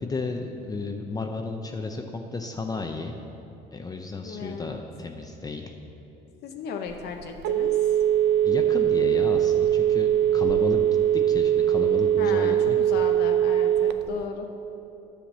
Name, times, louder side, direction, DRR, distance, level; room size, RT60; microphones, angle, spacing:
voice 1, 0.0-3.2 3.7-5.7 8.4-10.8 11.1-12.8, left 3 dB, 20° left, 4 dB, 0.6 m, -33 dB
voice 2, 4.2-4.8 6.4-7.8 12.2-14.5, left 6 dB, 70° left, 4 dB, 0.7 m, -36 dB
Telephone, 6.9-14.2, right 10 dB, 80° right, 0.5 m, -22 dB
10.0 x 5.8 x 7.3 m, 2.9 s
cardioid pair, 110°, 17 cm